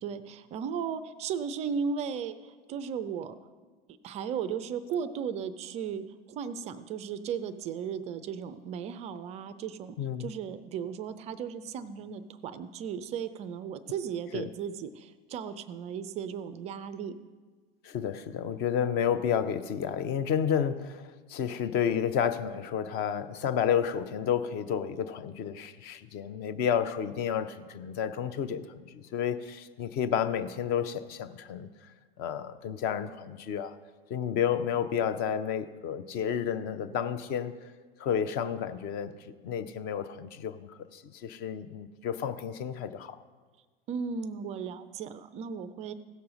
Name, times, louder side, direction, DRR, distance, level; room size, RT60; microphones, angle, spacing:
voice 1, 0.0-3.4 4.0-17.1 43.9-45.9, right 7 dB, 20° right, 12 dB, 0.4 m, -36 dB
voice 2, 10.0-10.3 14.3-14.5 17.8-31.7 32.2-33.8 34.1-37.5 38.0-43.2, left 8 dB, 30° left, 13 dB, 0.6 m, -31 dB
16.5 x 6.8 x 3.9 m, 1.4 s
figure-of-eight pair, 90°, 30 cm